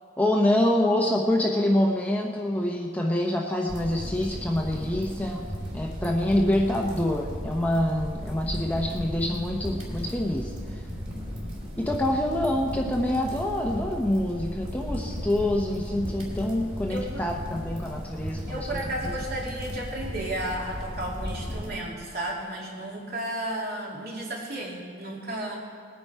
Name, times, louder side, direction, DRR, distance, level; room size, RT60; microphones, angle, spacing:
voice 1, 0.2-5.5 5.7-10.9 11.8-18.7, left 1 dB, 10° left, 0 dB, 0.7 m, -26 dB
sound 1, 3.7-21.7, equal, 30° right, 2.7 m, -35 dB
voice 2, 16.9-17.2 18.5-25.6, right 1 dB, 50° right, -3 dB, 2.7 m, -33 dB
20.0 x 9.8 x 4.6 m, 2.1 s
head